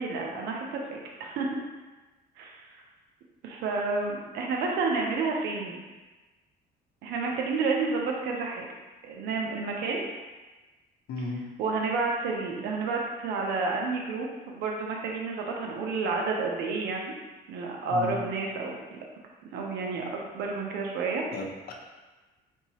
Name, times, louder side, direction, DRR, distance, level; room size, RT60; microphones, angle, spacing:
voice 1, 0.0-1.6 2.4-2.6 3.4-5.8 7.0-8.7 9.0-10.0 11.6-17.1 17.5-19.0 19.5-21.2, right 4 dB, 80° right, 0 dB, 0.6 m, -30 dB
voice 2, 11.1-11.4 17.9-18.2 21.3-21.7, left 3 dB, 65° left, 1 dB, 0.7 m, -34 dB
4.5 x 2.7 x 2.9 m, 1.2 s
cardioid pair, 110°, 17 cm